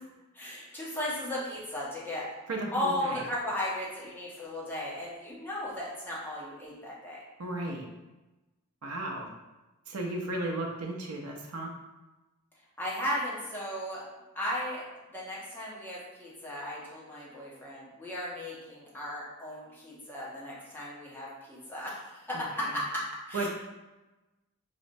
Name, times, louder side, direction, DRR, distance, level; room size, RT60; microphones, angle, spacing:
voice 1, 0.3-2.2 2.7-7.2 12.8-14.0 14.3-14.8 15.1-23.0 23.3-23.5, left 1 dB, 10° left, -6 dB, 0.7 m, -35 dB
voice 2, 2.5-3.2 7.4-7.9 8.8-9.3 9.9-11.7 22.3-22.8 23.3-23.5, right 2 dB, 85° right, 0 dB, 0.5 m, -35 dB
4.2 x 2.0 x 2.6 m, 1.1 s
head